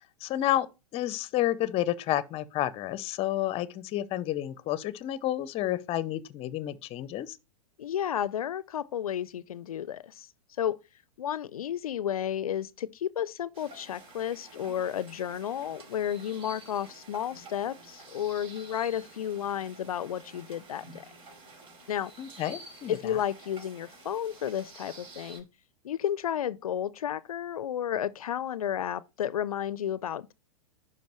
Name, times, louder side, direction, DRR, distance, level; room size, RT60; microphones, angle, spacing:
voice 1, 0.2-0.7 0.9-7.4 22.2-23.2, left 13 dB, 35° left, 0.7 m, -30 dB
voice 2, 7.8-10.3 10.6-10.8 11.2-21.1 21.9-22.1 22.9-25.4 25.8-30.3, left 10 dB, 80° left, 0.5 m, -32 dB
sound 1, 13.5-25.4, right 3 dB, 30° right, 5.0 m, -50 dB
10.5 x 5.5 x 3.0 m
hypercardioid pair, 105°, 18 cm